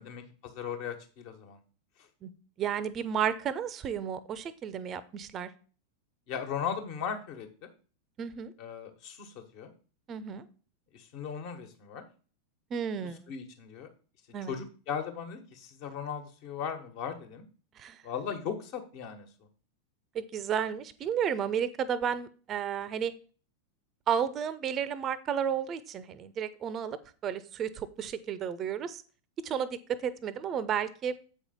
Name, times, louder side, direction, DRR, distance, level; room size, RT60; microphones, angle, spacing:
voice 1, 0.0-1.6 6.3-7.7 8.6-9.7 10.9-12.0 13.3-13.9 14.5-17.4 18.0-19.3, left 7 dB, 45° left, 6 dB, 1.4 m, -37 dB
voice 2, 2.6-5.5 8.2-8.5 10.1-10.4 12.7-13.3 14.3-14.6 17.8-18.0 20.1-23.1 24.1-29.0 29.4-31.2, right 8 dB, 30° right, 16 dB, 0.6 m, -32 dB
8.2 x 5.6 x 4.3 m, 0.38 s
figure-of-eight pair, 90°, 0 cm